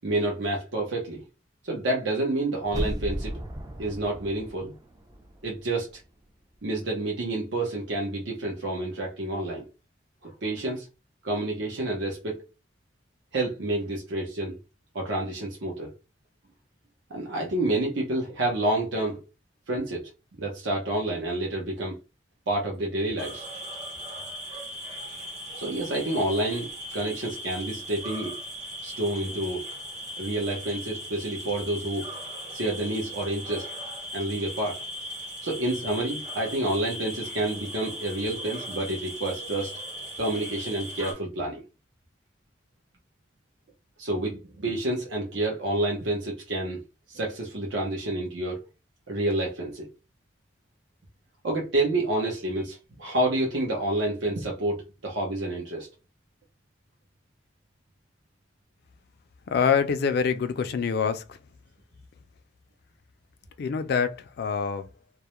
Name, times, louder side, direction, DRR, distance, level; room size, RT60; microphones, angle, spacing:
voice 1, 0.0-1.2 1.6-3.3 3.8-4.7 5.4-5.9 6.6-9.7 10.2-10.9 11.2-12.4 13.3-14.6 14.9-15.9 17.1-19.2 19.7-20.1 20.4-22.0 22.5-23.4 25.6-28.3 28.8-29.7 30.2-32.1 32.5-33.7 34.1-34.8 35.4-39.7 40.2-41.6 44.0-46.8 47.1-48.6 49.1-49.9 51.4-55.9, right 2 dB, 75° right, 0.7 m, -29 dB
sound 1, 2.6-5.6 5.9-6.0, equal, 20° right, 0.4 m, -35 dB
sound 2, 23.2-41.1, equal, 40° right, 1.0 m, -38 dB
voice 2, 59.5-61.4 63.6-64.9, left 6 dB, 55° left, 0.3 m, -25 dB
2.3 x 2.0 x 2.9 m
head